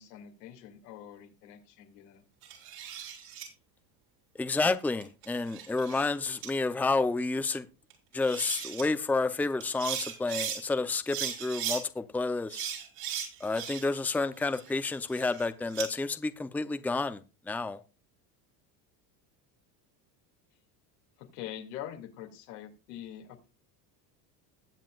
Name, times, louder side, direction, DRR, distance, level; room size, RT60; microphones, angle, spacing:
voice 1, 0.0-2.2 21.2-23.5, left 11 dB, 85° left, 2.6 m, -44 dB
sound 1, 2.4-3.5 5.0-6.1 6.4-6.5 7.9-8.0 8.2-8.8 9.6-10.6 11.1-11.8 12.5-14.0 14.4-15.9, right 9 dB, 80° right, 6.0 m, -37 dB
voice 2, 4.4-7.7 8.1-12.7 13.4-17.2 17.5-17.8, left 3 dB, 5° left, 0.7 m, -30 dB
21.0 x 7.4 x 2.5 m
supercardioid pair, 100°, 47 cm